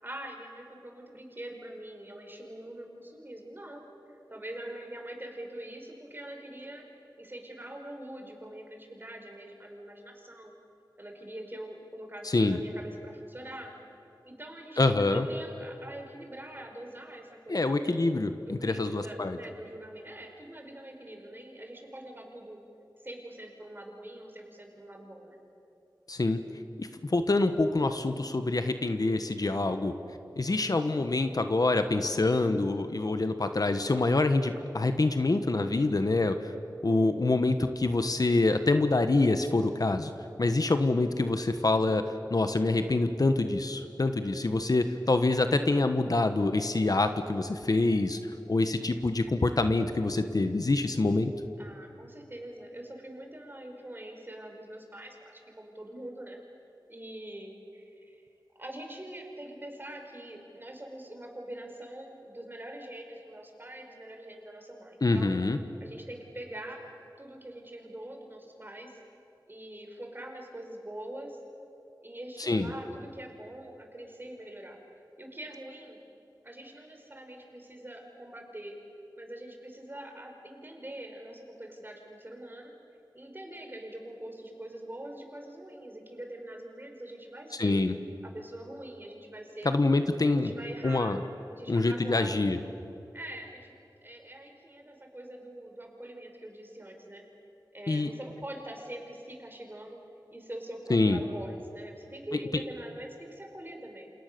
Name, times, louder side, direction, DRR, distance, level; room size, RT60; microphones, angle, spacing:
voice 1, 0.0-6.9 7.2-10.5 11.0-13.7 14.2-18.0 18.4-22.6 23.0-25.4 51.6-56.4 56.9-58.2 58.6-65.4 65.8-66.8 67.2-69.0 69.5-71.4 72.0-74.8 75.2-76.0 76.4-78.8 79.1-82.7 83.1-87.8 88.2-89.7 90.3-91.2 91.6-92.4 93.1-93.7 94.0-97.2 97.7-100.0 100.3-104.1, right 1 dB, 30° right, 3 dB, 4.9 m, -44 dB
voice 2, 12.2-12.6 14.8-15.3 17.5-19.4 26.1-26.4 26.8-29.9 30.4-36.5 36.8-40.1 40.4-48.2 48.5-51.3 65.0-65.6 72.4-72.7 87.5-87.9 89.6-90.5 90.8-91.2 91.7-92.6 97.9-98.1 100.9-101.2, left 2 dB, 55° left, 8 dB, 1.4 m, -26 dB
29.0 x 27.0 x 6.9 m, 2.8 s
wide cardioid pair, 75°, 7 cm